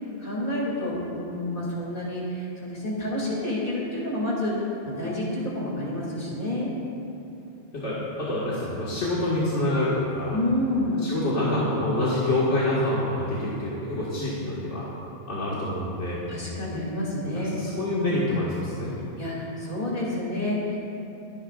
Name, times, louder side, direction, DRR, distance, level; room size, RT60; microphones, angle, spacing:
voice 1, 0.2-4.5 4.8-6.7 10.3-11.0 16.3-17.6 19.2-20.8, left 1 dB, 50° left, -5 dB, 3.0 m, -29 dB
voice 2, 7.7-10.4 11.0-14.8 15.3-16.2 17.3-18.9, left 1 dB, 80° left, -8 dB, 2.2 m, -26 dB
27.0 x 9.7 x 2.5 m, 2.8 s
omnidirectional pair, 1.2 m